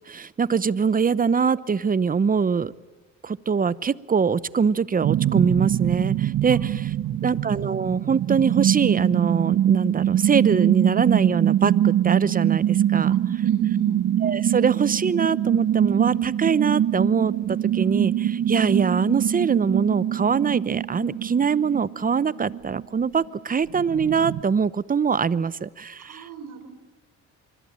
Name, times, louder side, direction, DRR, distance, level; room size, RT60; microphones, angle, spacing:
voice 1, 0.1-2.7 3.2-6.9 7.2-13.4 14.2-26.3, right 6 dB, 30° right, 19 dB, 0.8 m, -23 dB
sound 1, 5.0-22.8 23.2-23.3 23.7-24.4, right 11 dB, 65° right, 0.9 m, -23 dB
voice 2, 7.0-7.4 13.1-14.0 26.0-26.7, right 6 dB, 85° right, 9 dB, 4.4 m, -39 dB
24.5 x 24.5 x 8.8 m, 1.2 s
cardioid pair, 90°, 30 cm